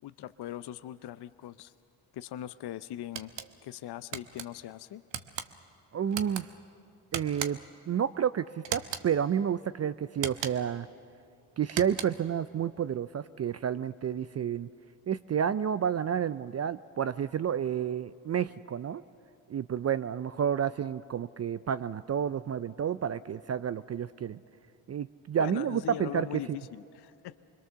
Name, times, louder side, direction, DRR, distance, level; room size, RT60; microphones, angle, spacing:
voice 1, 0.0-1.7 2.1-3.3 3.6-5.0 25.4-27.4, left 12 dB, 55° left, 13 dB, 0.7 m, -40 dB
sound 1, 3.1-3.5 4.1-4.5 5.1-5.5 6.1-6.4 7.1-7.7 8.6-9.1 10.1-10.7 11.6-12.3, right 9 dB, 60° right, 1.2 m, -37 dB
voice 2, 5.9-6.5 7.1-7.6 7.9-10.9 11.6-14.7 15.1-19.0 19.5-24.4 24.9-26.6, right 8 dB, 35° right, 15 dB, 0.4 m, -30 dB
25.5 x 21.5 x 6.9 m, 2.6 s
supercardioid pair, 60°, 49 cm